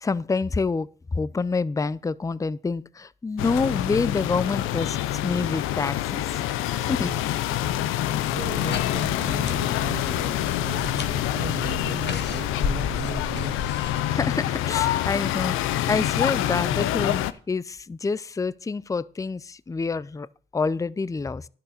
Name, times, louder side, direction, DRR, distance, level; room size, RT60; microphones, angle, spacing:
voice 1, 0.0-6.4 6.8-7.1 14.1-20.3 20.5-21.5, left 4 dB, 15° left, 0.5 m, -27 dB
sound 1, 3.4-17.3, left 13 dB, 85° left, 0.6 m, -26 dB
voice 2, 7.5-7.8 8.3-13.7, right 7 dB, 70° right, 1.4 m, -37 dB
sound 2, 8.2-14.0, left 5 dB, 55° left, 1.7 m, -34 dB
11.0 x 6.7 x 6.5 m
supercardioid pair, 55°, 20 cm